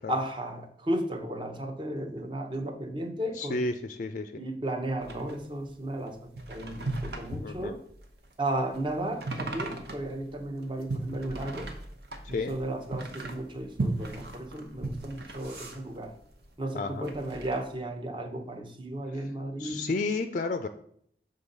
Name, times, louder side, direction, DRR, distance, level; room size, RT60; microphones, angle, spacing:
voice 1, 0.1-3.7 4.3-7.8 8.4-11.7 12.3-16.2 16.6-19.9, right 1 dB, 25° right, 5 dB, 0.8 m, -34 dB
voice 2, 3.4-4.4 7.3-7.7 12.2-12.5 16.7-17.1 19.1-19.2 19.6-20.7, left 3 dB, 45° left, 8 dB, 0.4 m, -32 dB
sound 1, 5.0-16.5 16.9-17.6, right 2 dB, 60° right, 1.0 m, -38 dB
7.1 x 3.8 x 5.3 m, 0.67 s
head